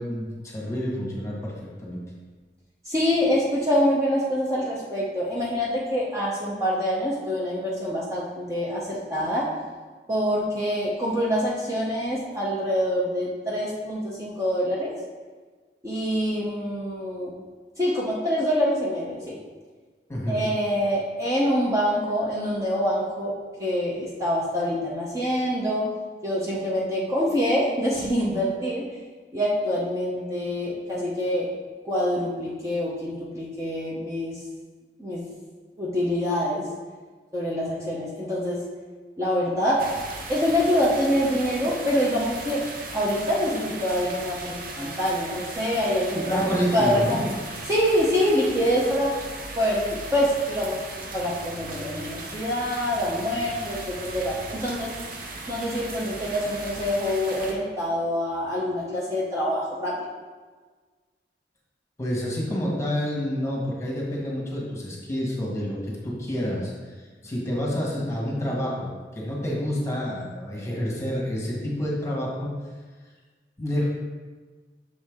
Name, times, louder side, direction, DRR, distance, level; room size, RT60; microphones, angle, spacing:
voice 1, 0.0-1.5 1.8-2.0 20.1-20.4 46.1-47.3 62.0-66.7 67.2-72.5 73.6-73.8, equal, 15° left, -4 dB, 1.4 m, -28 dB
voice 2, 2.8-9.5 10.1-14.9 15.8-17.3 17.8-19.4 20.3-23.3 23.6-25.9 26.2-28.8 29.3-31.5 31.8-34.4 35.0-35.2 35.8-36.7 37.3-38.6 39.2-39.8 40.3-42.6 42.9-46.5 46.7-47.3 47.7-49.1 49.6-50.8 51.1-54.9 55.5-59.9, equal, 20° right, -6 dB, 0.8 m, -25 dB
sound 1, 39.8-57.5, right 2 dB, 55° right, 0.8 m, -37 dB
6.5 x 4.6 x 3.6 m, 1.4 s
head